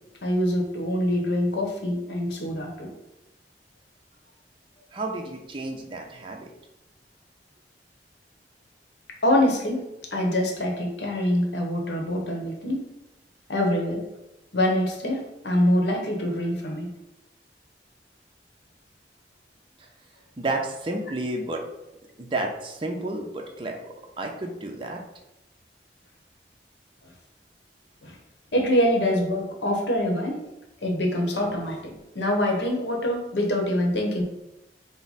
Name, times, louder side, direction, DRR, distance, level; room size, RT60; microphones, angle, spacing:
voice 1, 0.2-2.9 9.2-12.9 13.5-14.0 14.5-16.9 27.0-27.1 28.0-28.2 28.5-30.4 30.8-34.2, left 1 dB, 80° left, 1 dB, 0.9 m, -25 dB
voice 2, 4.9-6.5 20.4-21.6 22.2-23.8 24.2-25.0, right 2 dB, 30° right, 1 dB, 0.5 m, -31 dB
4.6 x 2.1 x 4.0 m, 0.95 s
head